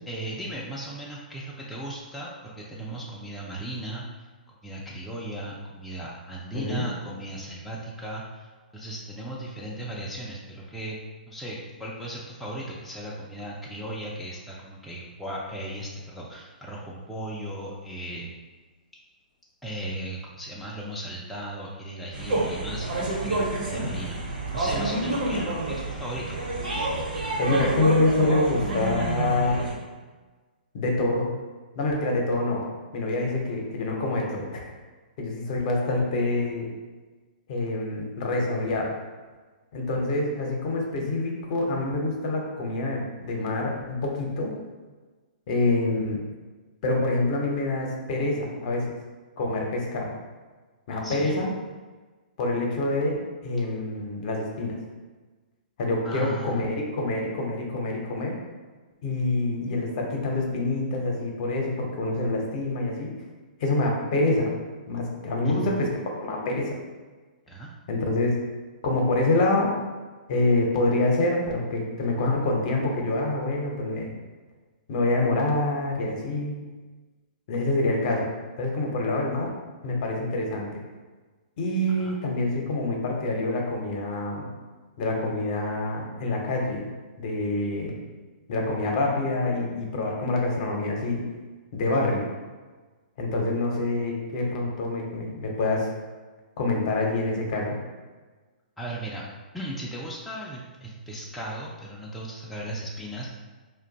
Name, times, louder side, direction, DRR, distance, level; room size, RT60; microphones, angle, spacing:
voice 1, 0.1-4.3 4.6-11.0 11.3-18.3 19.6-26.4 50.9-51.4 56.0-56.7 65.4-65.7 67.5-67.7 82.0-82.2 98.8-99.3 99.5-103.3, right 1 dB, ahead, -6 dB, 0.4 m, -37 dB
voice 2, 6.5-6.9 27.4-29.7 30.7-31.3 31.8-32.6 32.9-34.7 35.2-36.7 37.5-38.9 39.7-44.5 45.5-46.2 46.8-48.8 49.4-50.1 50.9-51.5 52.4-54.8 55.8-58.4 59.0-63.1 63.6-64.5 64.9-65.9 66.3-66.8 67.9-68.4 68.8-69.8 70.3-74.1 74.9-76.6 77.5-78.3 78.6-79.5 79.8-80.7 81.6-84.5 85.0-88.0 88.5-91.2 91.7-92.2 93.2-95.9 96.6-97.8, left 2 dB, 50° left, 0 dB, 0.7 m, -26 dB
sound 1, 22.1-29.7, right 2 dB, 65° right, 1.0 m, -28 dB
2.5 x 2.2 x 3.8 m, 1.3 s
hypercardioid pair, 125°, 5 cm